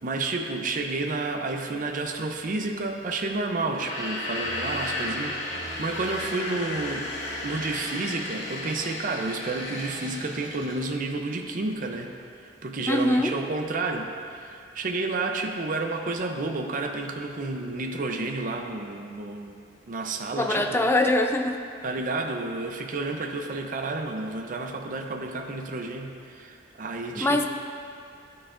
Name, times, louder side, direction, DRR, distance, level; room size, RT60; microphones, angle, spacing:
voice 1, 0.0-7.1 7.4-12.1 12.4-19.6 19.9-20.9 21.8-27.4, right 3 dB, 50° right, 3 dB, 0.5 m, -31 dB
sound 1, 3.7-10.9, left 1 dB, 80° left, 1.7 m, -34 dB
voice 2, 12.9-13.3 20.3-21.6 27.2-27.5, left 1 dB, 15° left, 5 dB, 0.4 m, -23 dB
11.5 x 6.1 x 2.4 m, 2.4 s
head